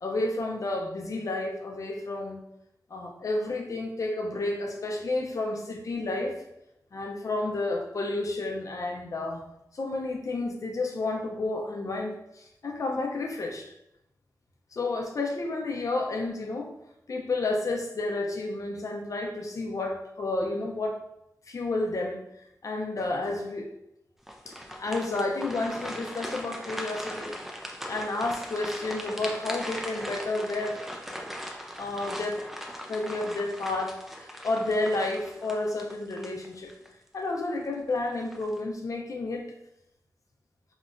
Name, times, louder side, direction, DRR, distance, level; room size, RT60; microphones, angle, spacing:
voice 1, 0.0-2.4 2.9-6.4 6.9-9.5 9.7-13.7 14.7-16.7 17.1-21.0 21.5-22.2 22.6-23.7 24.5-27.3 27.9-31.2 31.8-32.4 32.9-36.7 37.1-39.5, left 2 dB, 55° left, 2 dB, 0.4 m, -31 dB
sound 1, 24.2-36.9 37.3-37.5 38.1-38.6, equal, 5° right, 0.4 m, -39 dB
2.8 x 2.1 x 2.5 m, 0.81 s
wide cardioid pair, 70°, 7 cm